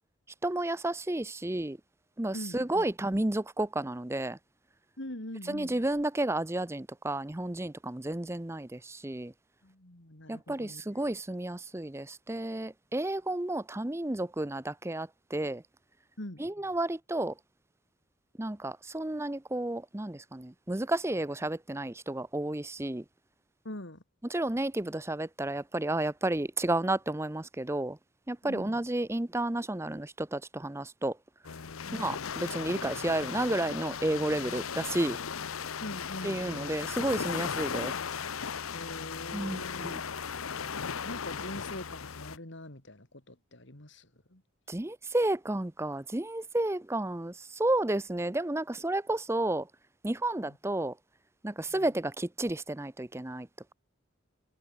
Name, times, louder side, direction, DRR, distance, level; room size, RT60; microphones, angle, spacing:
voice 1, 0.4-1.8 2.2-4.4 5.5-9.3 10.3-15.6 16.4-17.3 18.4-23.0 24.3-28.0 28.3-31.2 31.9-35.2 36.2-37.9 39.3-40.0 44.7-49.7 50.0-50.9 51.4-53.5, right 1 dB, 10° right, 0.6 m, -32 dB
voice 2, 2.3-2.8 5.0-5.7 9.6-11.0 16.2-16.4 23.6-24.0 28.4-28.8 31.8-32.2 35.8-36.8 38.7-40.3 41.0-44.4 50.4-50.6 51.7-51.9, left 1 dB, 60° left, 3.0 m, -43 dB
sound 1, 31.4-42.4, left 6 dB, 80° left, 0.9 m, -36 dB
head